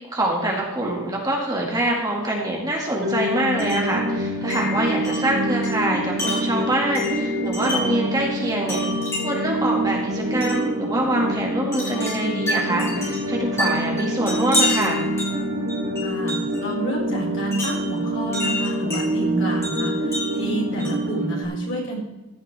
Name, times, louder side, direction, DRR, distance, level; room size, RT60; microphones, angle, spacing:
voice 1, 0.1-15.1, right 1 dB, 15° right, -1 dB, 2.1 m, -25 dB
sound 1, 3.0-21.4, right 1 dB, 60° right, 3.9 m, -26 dB
Wind chime, 3.6-4.0 4.5-8.1 8.7-9.5 10.4-10.7 11.7-16.7 17.5-19.1 19.6-21.2, left 1 dB, 10° left, 5.2 m, -29 dB
voice 2, 16.0-22.0, right 1 dB, 55° left, -3 dB, 5.2 m, -29 dB
16.0 x 11.5 x 3.5 m, 1.1 s
head